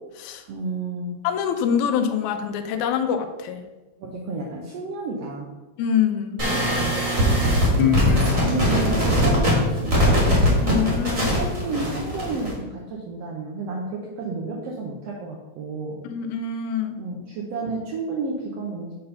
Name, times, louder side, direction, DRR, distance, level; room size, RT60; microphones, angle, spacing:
voice 1, 0.5-1.1 4.0-5.5 6.7-7.0 8.1-10.2 11.3-16.0 17.0-18.9, right 3 dB, 70° right, -2 dB, 1.7 m, -31 dB
voice 2, 1.2-3.6 5.8-6.4 10.6-11.4 16.1-17.0, left 8 dB, 90° left, 7 dB, 2.0 m, -25 dB
sound 1, 6.4-12.5, equal, 30° right, 2.1 m, -21 dB
Guitar, 7.8-11.0, left 9 dB, 70° left, 1.3 m, -28 dB
6.8 x 4.0 x 5.4 m, 1.2 s
omnidirectional pair, 3.4 m